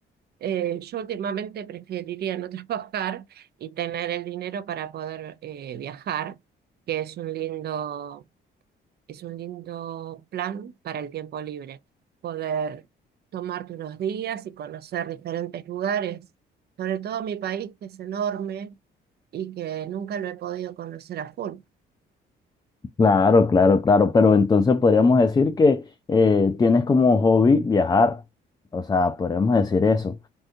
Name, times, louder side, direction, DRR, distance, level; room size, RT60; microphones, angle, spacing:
voice 1, 0.4-6.4 6.9-8.2 9.1-11.8 12.2-12.8 13.3-16.3 16.8-18.8 19.3-21.6, right 9 dB, 55° right, 0.4 m, -31 dB
voice 2, 23.0-25.8 26.1-28.2 28.7-30.2, left 4 dB, 20° left, 0.3 m, -18 dB
3.6 x 2.6 x 2.5 m
cardioid pair, 90°, 20 cm